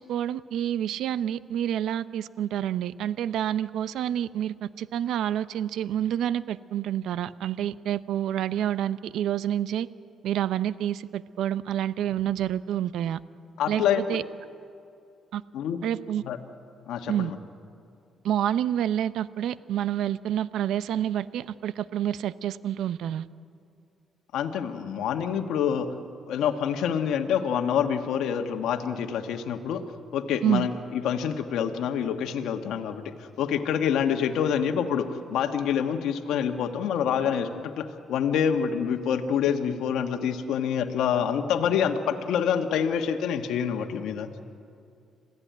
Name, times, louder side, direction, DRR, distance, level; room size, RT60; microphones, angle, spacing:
voice 1, 0.0-9.9 10.2-13.2 13.7-14.2 15.3-15.4 15.8-16.2 17.1-17.3 18.2-23.3 30.4-30.7, right 10 dB, 80° right, 16 dB, 0.6 m, -28 dB
voice 2, 13.6-14.2 15.5-15.8 16.2-16.4 16.9-17.4 24.3-25.9 26.3-29.8 30.1-44.3, left 8 dB, 85° left, 5 dB, 1.4 m, -27 dB
26.5 x 16.0 x 9.3 m, 2.4 s
cardioid pair, 90°, 0 cm